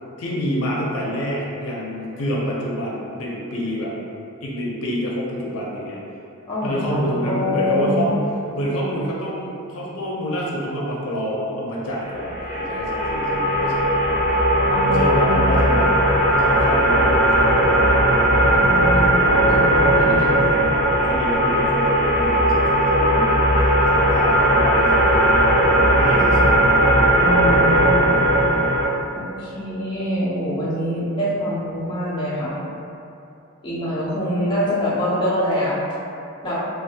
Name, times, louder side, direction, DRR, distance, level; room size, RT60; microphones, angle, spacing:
voice 1, 0.2-3.9 4.4-6.0 6.6-8.3 8.5-14.1 14.9-15.9 16.4-18.1 20.6-26.5, equal, 75° left, -4 dB, 0.5 m, -27 dB
voice 2, 6.5-8.1 14.7-15.5 18.5-20.5 27.2-28.4 29.1-32.6 33.6-35.8 36.4-36.6, equal, 20° left, -9 dB, 0.4 m, -25 dB
sound 1, 12.1-28.8, right 1 dB, 55° right, 0.7 m, -17 dB
3.0 x 2.0 x 2.7 m, 2.7 s
head